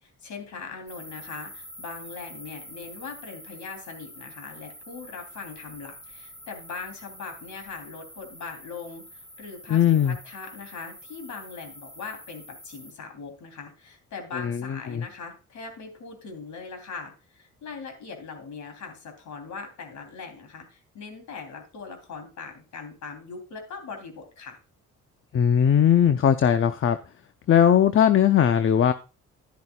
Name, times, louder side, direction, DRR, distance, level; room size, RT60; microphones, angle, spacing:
voice 1, 0.0-24.6, left 4 dB, 70° left, 5 dB, 3.4 m, -40 dB
sound 1, 0.9-12.9, equal, 10° left, 3.6 m, -46 dB
voice 2, 9.7-10.1 14.3-15.0 25.3-27.0 27.5-28.9, left 9 dB, 45° left, 10 dB, 0.7 m, -19 dB
11.5 x 11.0 x 2.4 m, 0.32 s
cardioid pair, 90°, 30 cm